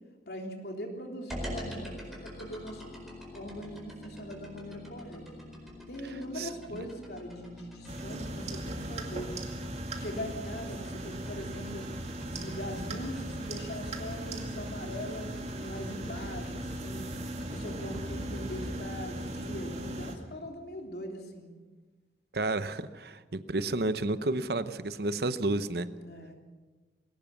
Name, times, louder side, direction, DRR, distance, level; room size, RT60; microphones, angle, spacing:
voice 1, 0.3-3.0 3.3-5.3 5.9-9.4 9.9-11.9 12.3-17.1 17.5-21.5 25.9-26.3, equal, 60° left, 2 dB, 3.4 m, -41 dB
sound 1, 1.3-18.7, equal, ahead, 4.5 m, -45 dB
sound 2, 7.9-20.2, right 1 dB, 35° right, 2.3 m, -38 dB
voice 2, 22.3-25.9, right 2 dB, 60° right, 12 dB, 0.9 m, -31 dB
21.0 x 18.0 x 7.2 m, 1.3 s
head